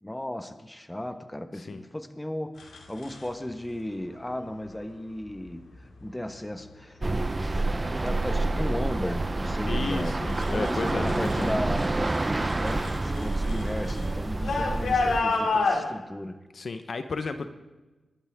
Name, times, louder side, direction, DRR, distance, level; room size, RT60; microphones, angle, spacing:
voice 1, 0.0-5.7 6.0-12.1 12.6-16.4, left 1 dB, 15° left, 8 dB, 1.3 m, -35 dB
sound 1, 2.6-3.3 4.4-4.7 5.3-5.8 6.3-6.8 7.2-11.5 11.7-15.8, left 3 dB, 80° left, 2.5 m, -31 dB
sound 2, 7.0-15.2, right 2 dB, 30° right, 0.8 m, -28 dB
voice 2, 9.7-11.6 16.5-17.5, left 4 dB, 60° left, 9 dB, 1.0 m, -33 dB
26.0 x 12.0 x 3.7 m, 1.1 s
cardioid pair, 55°, 0 cm